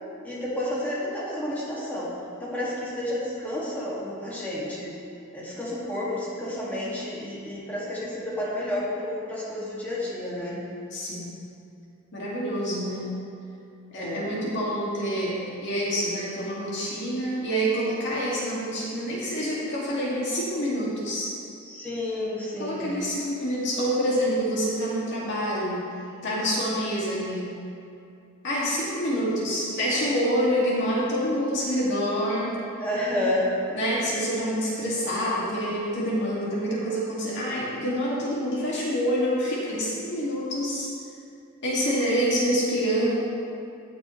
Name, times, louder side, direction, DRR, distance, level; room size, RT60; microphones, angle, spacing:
voice 1, 0.2-2.1 2.4-4.9 5.3-10.6 14.0-14.4 21.6-22.9 29.1-29.4 32.8-33.6, left 1 dB, 10° left, -9 dB, 2.1 m, -30 dB
voice 2, 10.9-11.4 12.1-13.2 13.9-21.3 22.6-25.8 26.1-27.5 28.4-32.6 33.7-40.9 41.6-43.1, equal, 55° left, -7 dB, 2.3 m, -27 dB
18.0 x 6.1 x 3.2 m, 2.5 s
head